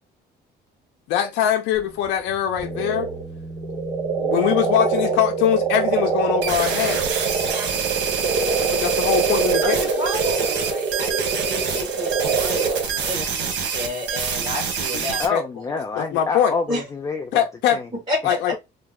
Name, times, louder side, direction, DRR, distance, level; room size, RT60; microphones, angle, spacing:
voice 1, 1.1-3.1 4.2-7.1 8.6-10.0 15.3-15.4 16.0-16.5 17.3-17.8 18.2-18.6, left 10 dB, 85° left, 0.5 m, -22 dB
sound 1, 1.7-9.2, right 2 dB, ahead, 1.0 m, -39 dB
Frogs Underwater, 2.6-12.8, right 5 dB, 40° right, 0.8 m, -24 dB
sound 2, 6.4-15.3, right 6 dB, 85° right, 1.0 m, -27 dB
voice 2, 9.6-15.2 16.7-16.8 18.1-18.4, left 1 dB, 25° right, 1.4 m, -31 dB
voice 3, 15.2-17.4 17.7-17.9, left 4 dB, 15° left, 0.4 m, -27 dB
2.8 x 2.1 x 3.5 m
cardioid pair, 130°, 18 cm